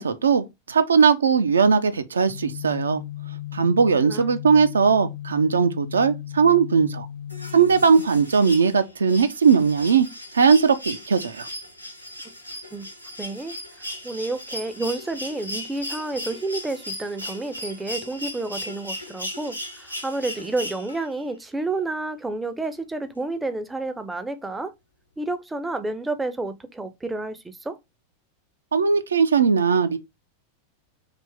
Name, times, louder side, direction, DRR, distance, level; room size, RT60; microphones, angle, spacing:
voice 1, 0.0-3.0 3.5-7.1 7.5-10.1 10.3-11.5 28.7-30.0, right 5 dB, 70° right, 0.4 m, -19 dB
sound 1, 2.3-7.8, left 12 dB, 45° left, 0.6 m, -36 dB
sound 2, 7.3-21.2 22.6-22.7, left 1 dB, 90° left, 0.9 m, -37 dB
voice 2, 13.2-13.6 14.0-24.7 25.2-27.8, right 2 dB, 10° right, 0.4 m, -30 dB
3.3 x 2.6 x 3.4 m
figure-of-eight pair, 90°, 0 cm